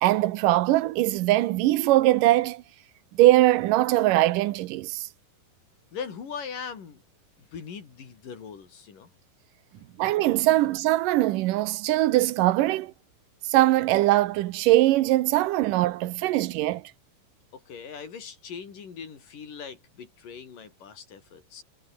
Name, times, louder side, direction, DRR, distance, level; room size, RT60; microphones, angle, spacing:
voice 1, 0.0-2.6 3.2-5.1 10.0-12.9 13.5-16.8, right 16 dB, 80° right, 2.4 m, -21 dB
voice 2, 5.9-7.0 7.4-9.1 9.8-9.9 17.5-21.6, left 6 dB, 80° left, 5.3 m, -40 dB
omnidirectional pair, 3.8 m